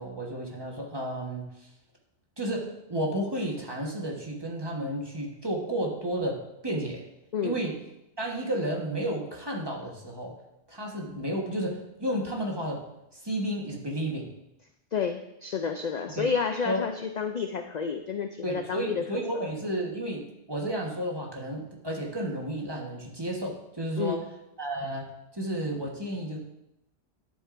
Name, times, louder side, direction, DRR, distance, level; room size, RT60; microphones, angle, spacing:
voice 1, 0.0-1.7 2.4-7.0 7.4-7.7 8.2-10.3 10.7-12.8 13.1-14.3 16.1-16.3 16.6-16.8 18.4-24.2 24.6-26.4, right 1 dB, 25° right, -1 dB, 1.3 m, -32 dB
voice 2, 14.9-19.1 24.0-24.2, left 6 dB, 55° left, 6 dB, 0.5 m, -30 dB
11.0 x 7.9 x 2.6 m, 0.87 s
omnidirectional pair, 1.1 m